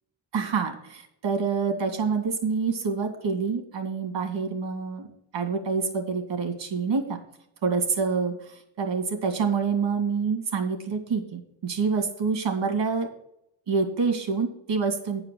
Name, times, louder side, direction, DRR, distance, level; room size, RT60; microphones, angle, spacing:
voice 1, 0.3-5.1 5.3-7.2 7.6-13.1 13.7-15.2, right 5 dB, 75° right, 4 dB, 2.3 m, -27 dB
9.4 x 4.8 x 7.6 m, 0.78 s
wide cardioid pair, 135°, 44 cm